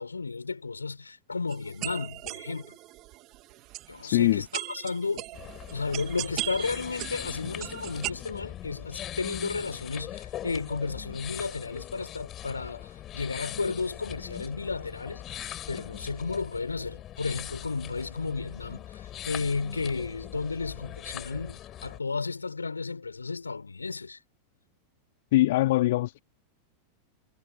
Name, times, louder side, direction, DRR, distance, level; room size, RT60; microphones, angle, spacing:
voice 1, 0.0-2.8 3.9-24.2, left 4 dB, 80° left, 7.6 m, -33 dB
sound 1, 1.5-8.1, right 19 dB, 40° right, 3.0 m, -39 dB
voice 2, 4.0-4.4 25.3-26.2, left 16 dB, 55° left, 2.9 m, -22 dB
sound 2, 5.3-22.0, left 12 dB, 30° left, 7.0 m, -41 dB
figure-of-eight pair, 90°, 0 cm